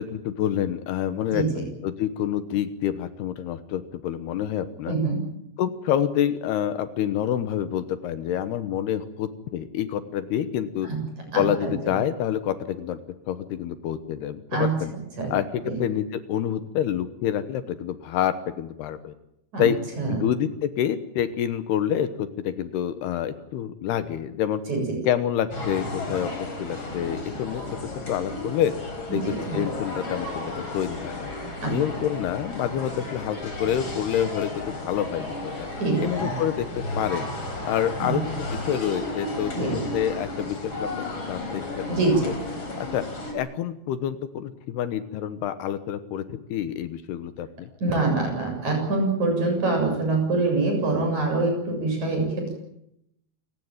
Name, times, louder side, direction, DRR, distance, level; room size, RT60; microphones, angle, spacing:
voice 1, 0.0-5.0 5.6-10.9 11.3-13.0 13.3-14.9 15.3-19.1 19.6-19.8 20.1-24.6 25.0-26.3 26.6-27.8 28.1-28.7 29.1-31.3 31.6-35.7 36.0-37.3 37.6-39.5 39.9-41.9 42.2-42.3 42.8-43.1 43.3-47.7, left 10 dB, 75° left, 12 dB, 3.1 m, -27 dB
voice 2, 1.3-1.7 4.9-5.2 10.8-11.0 11.3-11.7 14.5-14.8 15.2-15.3 15.6-15.8 19.5-19.6 20.0-20.2 24.7-25.0 29.1-29.6 31.6-31.7 35.8-36.3 38.0-38.2 39.5-39.8 41.9-42.3 47.8-52.5, right 3 dB, 45° right, 2 dB, 8.5 m, -25 dB
sound 1, 25.5-43.3, left 2 dB, 30° left, 5.1 m, -33 dB
28.0 x 16.5 x 9.0 m, 0.80 s
omnidirectional pair, 4.8 m